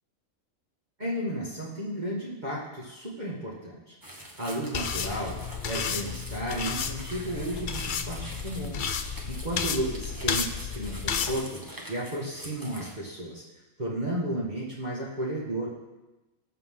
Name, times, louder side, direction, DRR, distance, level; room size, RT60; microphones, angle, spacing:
voice 1, 1.0-3.9 4.4-5.4 5.6-8.9 9.3-11.6 11.9-13.4 13.8-15.7, right 1 dB, 30° right, -6 dB, 2.0 m, -33 dB
sound 1, 4.0-12.9, right 1 dB, 15° right, 1.2 m, -45 dB
sound 2, 4.7-11.3, left 6 dB, 50° left, 0.6 m, -32 dB
19.5 x 6.9 x 3.8 m, 1.0 s
omnidirectional pair, 1.4 m